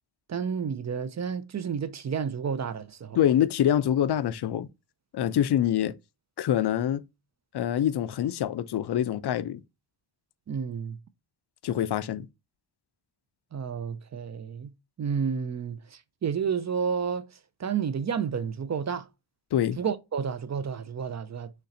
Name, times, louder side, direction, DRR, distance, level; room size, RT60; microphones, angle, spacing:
voice 1, 0.3-3.2 10.5-11.0 13.5-17.3 17.6-19.1 19.8-21.5, right 6 dB, 40° right, 0.4 m, -31 dB
voice 2, 3.1-4.7 5.1-5.9 6.4-7.0 7.5-9.6 11.6-12.3 19.5-19.8, left 10 dB, 55° left, 0.5 m, -25 dB
4.3 x 3.2 x 3.8 m
wide cardioid pair, 115°, 47 cm